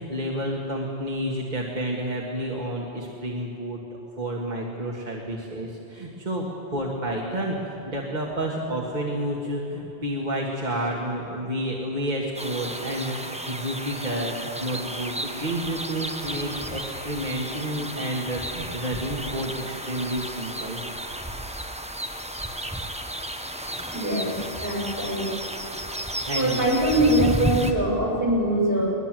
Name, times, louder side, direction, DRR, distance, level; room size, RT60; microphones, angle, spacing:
voice 1, 0.0-3.8 4.2-20.8 26.3-26.6, right 1 dB, 45° right, -3 dB, 2.0 m, -30 dB
sound 1, 12.3-27.7, right 1 dB, 5° right, 0.9 m, -33 dB
voice 2, 23.9-25.3 26.3-28.9, right 1 dB, 70° right, -3 dB, 7.8 m, -23 dB
21.5 x 20.5 x 7.7 m, 2.9 s
omnidirectional pair, 1.1 m